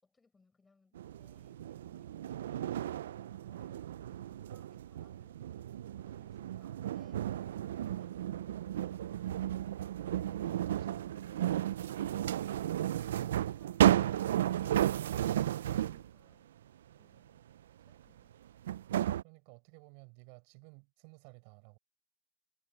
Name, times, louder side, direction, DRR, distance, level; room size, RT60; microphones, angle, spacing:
voice 1, 0.0-2.9 3.4-5.5 6.0-9.4 15.4-16.5 16.9-17.5 17.8-18.4, left 4 dB, 10° left, 6.5 m, -71 dB
sound 1, 0.9-16.1 17.9-18.0 18.7-19.2, right 12 dB, 90° right, 0.3 m, -33 dB
voice 2, 10.6-11.0 19.2-21.8, right 33 dB, 45° right, 4.5 m, -56 dB
supercardioid pair, 160°, 0 cm